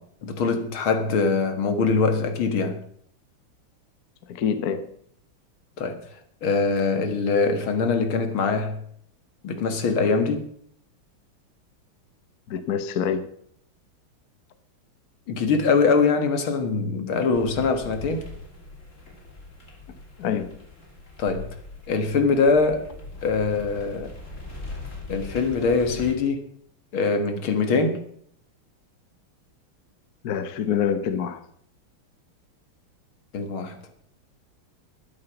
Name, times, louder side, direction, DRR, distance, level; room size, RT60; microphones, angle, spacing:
voice 1, 0.0-2.8 5.8-6.0 6.4-8.8 9.4-10.5 15.3-18.3 21.2-21.5 21.9-22.9 23.2-24.1 25.1-26.5 26.9-28.0 33.3-33.8, left 4 dB, 75° left, 2.4 m, -23 dB
voice 2, 4.3-4.9 12.5-13.3 20.2-20.6 30.2-31.4, left 8 dB, 55° left, 1.2 m, -26 dB
sound 1, 17.3-26.1, left 2 dB, 35° left, 3.3 m, -41 dB
12.0 x 11.0 x 5.9 m
omnidirectional pair, 2.3 m